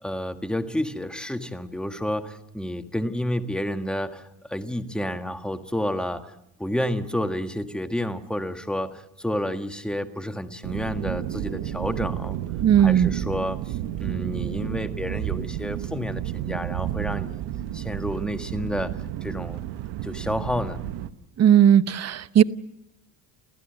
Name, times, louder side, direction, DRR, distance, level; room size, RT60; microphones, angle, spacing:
voice 1, 0.0-4.2 4.5-6.3 6.6-12.4 12.8-17.4 17.7-18.9 19.2-19.6 20.0-20.8, left 1 dB, ahead, 7 dB, 1.6 m, -30 dB
sound 1, 10.6-21.1, right 12 dB, 80° right, 1.2 m, -31 dB
voice 2, 12.6-13.1 21.4-22.4, right 9 dB, 40° right, 15 dB, 0.9 m, -17 dB
29.5 x 15.0 x 7.9 m, 0.82 s
supercardioid pair, 85°, 39 cm